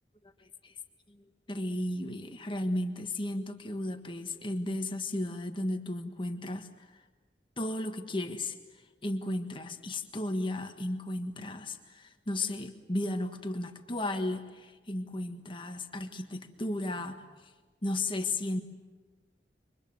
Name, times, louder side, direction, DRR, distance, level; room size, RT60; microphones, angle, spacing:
voice 1, 0.2-0.7 1.1-6.7 7.6-8.5 9.0-17.2 17.8-18.6, left 1 dB, 30° left, 6 dB, 1.6 m, -34 dB
28.5 x 24.5 x 7.8 m, 1.3 s
head